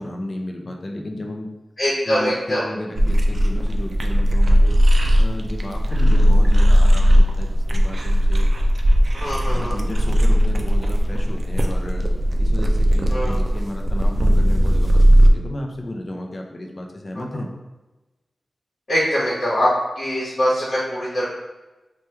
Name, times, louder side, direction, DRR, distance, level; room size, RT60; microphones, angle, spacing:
voice 1, 0.0-1.5 2.1-4.8 5.2-8.5 9.4-12.1 12.4-17.5, left 1 dB, 40° left, 2 dB, 0.4 m, -33 dB
voice 2, 1.8-2.7 9.1-9.7 13.1-13.4 18.9-21.2, equal, 60° left, -8 dB, 1.1 m, -22 dB
sound 1, 3.0-15.3, equal, 50° right, 0.3 m, -17 dB
3.0 x 2.2 x 3.3 m, 1.1 s
wide cardioid pair, 85°, 0 cm